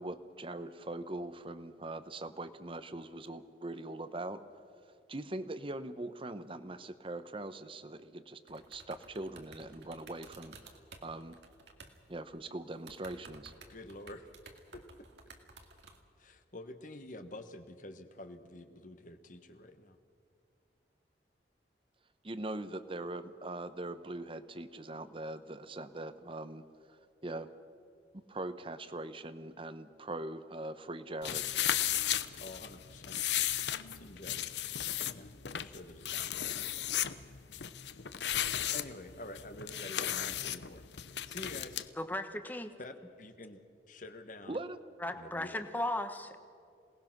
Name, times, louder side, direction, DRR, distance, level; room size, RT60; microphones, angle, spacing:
voice 1, 0.0-4.4 5.1-10.5 11.0-11.4 12.1-13.5 22.2-27.5 28.3-31.5 44.5-44.8, right 2 dB, 30° right, 12 dB, 0.9 m, -41 dB
sound 1, 8.5-12.0 12.3-12.4 12.7-16.0, right 3 dB, 85° right, 2.2 m, -54 dB
voice 2, 13.6-14.3 14.7-14.8 16.2-20.0 32.4-33.2 33.9-34.5 35.1-36.5 38.7-40.9 41.2-41.9 42.8-43.6 43.9-44.6 45.1-45.7, left 1 dB, 45° left, 8 dB, 1.4 m, -48 dB
sound 2, 31.2-41.9, left 11 dB, 80° left, 0.8 m, -35 dB
voice 3, 42.0-42.7 45.0-46.4, left 1 dB, 10° left, 8 dB, 1.1 m, -36 dB
27.5 x 19.0 x 6.1 m, 2.4 s
head